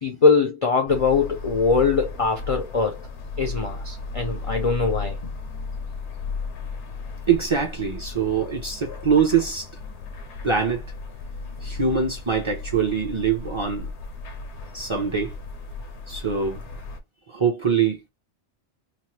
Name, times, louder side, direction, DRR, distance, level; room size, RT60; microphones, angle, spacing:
voice 1, 0.0-3.0 3.4-5.2, left 4 dB, 45° left, 0.4 m, -22 dB
sound 1, 0.9-17.0, left 3 dB, 75° left, 0.9 m, -35 dB
voice 2, 7.3-9.7 10.4-10.8 11.6-13.9 14.7-15.3 16.1-16.6 17.3-18.0, right 6 dB, 30° right, 0.6 m, -23 dB
2.9 x 2.1 x 3.1 m
omnidirectional pair, 1.2 m